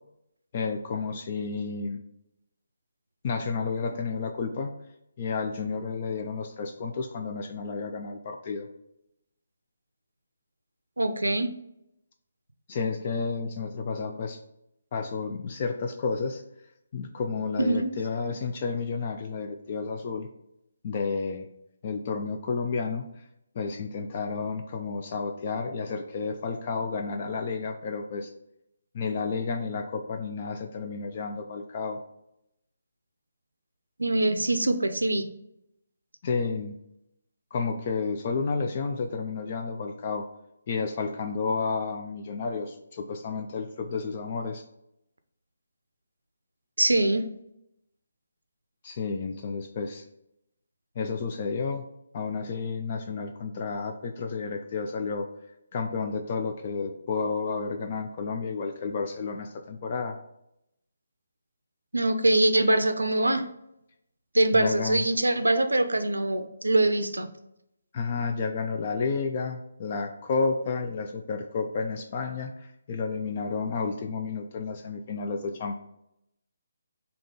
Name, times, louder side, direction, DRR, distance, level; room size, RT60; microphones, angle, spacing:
voice 1, 0.5-2.0 3.2-4.7 5.2-8.7 12.7-14.4 14.9-16.4 16.9-20.3 20.8-21.5 21.8-23.1 23.6-28.3 28.9-32.0 36.2-36.8 37.5-40.3 40.7-44.6 48.8-50.0 51.0-51.9 52.1-55.3 55.7-60.2 64.5-65.0 67.9-75.7, left 4 dB, 40° left, 4 dB, 0.3 m, -31 dB
voice 2, 11.0-11.5 17.6-17.9 34.0-35.2 46.8-47.3 61.9-63.5 64.3-67.3, right 2 dB, 85° right, 9 dB, 0.4 m, -23 dB
3.7 x 2.9 x 3.6 m, 0.81 s
figure-of-eight pair, 145°, 0 cm